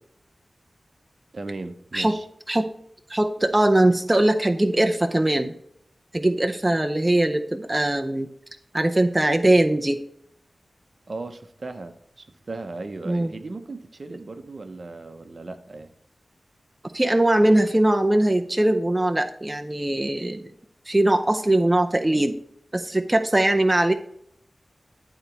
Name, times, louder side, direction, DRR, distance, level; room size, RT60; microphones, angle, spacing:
voice 1, 1.3-2.3 11.1-15.9, right 3 dB, 55° right, 9 dB, 0.8 m, -37 dB
voice 2, 3.1-5.6 6.1-8.3 8.7-10.0 13.1-13.3 16.9-20.5 20.9-22.4 22.7-23.9, right 1 dB, 20° right, 6 dB, 0.6 m, -21 dB
11.0 x 4.0 x 4.6 m, 0.72 s
wide cardioid pair, 70°, 0 cm